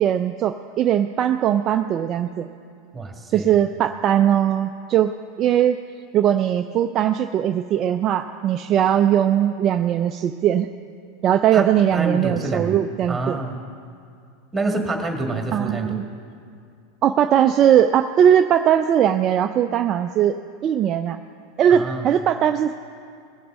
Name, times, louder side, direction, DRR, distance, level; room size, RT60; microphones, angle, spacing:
voice 1, 0.0-2.5 3.3-5.1 5.4-5.8 6.1-10.7 11.2-13.4 15.5-16.0 17.0-20.4 20.6-21.2 21.6-22.7, right 10 dB, 40° right, 7 dB, 0.4 m, -19 dB
voice 2, 2.9-3.6 11.5-13.6 14.5-16.0 21.7-22.1, right 2 dB, 10° right, 3 dB, 1.9 m, -27 dB
19.5 x 6.7 x 5.3 m, 2.3 s
hypercardioid pair, 90°, 0 cm